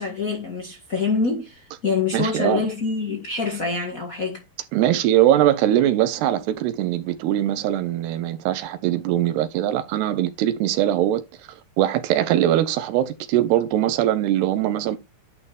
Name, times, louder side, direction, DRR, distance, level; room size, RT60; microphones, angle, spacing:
voice 1, 0.0-4.4, left 4 dB, 50° left, 0.9 m, -25 dB
voice 2, 2.1-2.6 4.7-11.2 11.8-15.0, right 12 dB, 90° right, 3.1 m, -21 dB
10.5 x 4.5 x 3.5 m
omnidirectional pair, 4.6 m